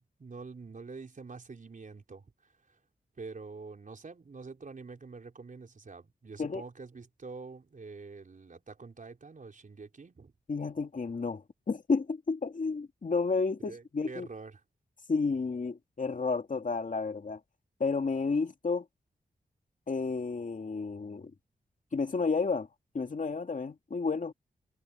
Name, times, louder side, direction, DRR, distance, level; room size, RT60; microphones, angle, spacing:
voice 1, 0.0-2.8 3.2-10.3 13.6-14.6, right 4 dB, 55° right, 4.5 m, -46 dB
voice 2, 10.5-14.3 15.1-17.4 17.8-18.9 19.9-21.3 21.9-22.7 22.9-24.3, left 4 dB, 55° left, 2.4 m, -31 dB
cardioid pair, 50°, 16 cm